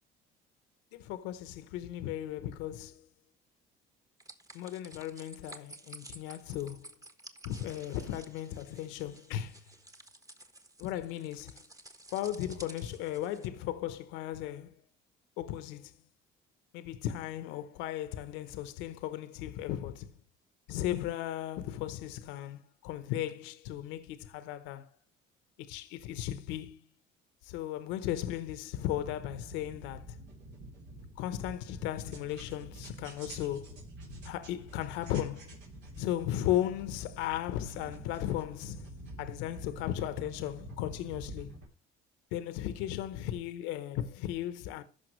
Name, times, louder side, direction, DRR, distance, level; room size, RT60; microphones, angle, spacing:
voice 1, 0.9-3.0 4.5-6.9 7.4-9.6 10.8-11.6 12.1-14.7 15.4-15.9 16.7-20.1 20.7-24.9 25.6-26.8 27.4-30.2 31.2-33.8 34.2-35.6 36.0-38.9 39.2-41.5 42.3-44.8, left 12 dB, 85° left, 0.9 m, -36 dB
sound 1, 4.2-13.5, right 2 dB, 20° right, 1.4 m, -53 dB
sound 2, 29.0-41.7, right 1 dB, 75° right, 3.8 m, -48 dB
14.5 x 5.8 x 3.1 m
cardioid pair, 95°, 19 cm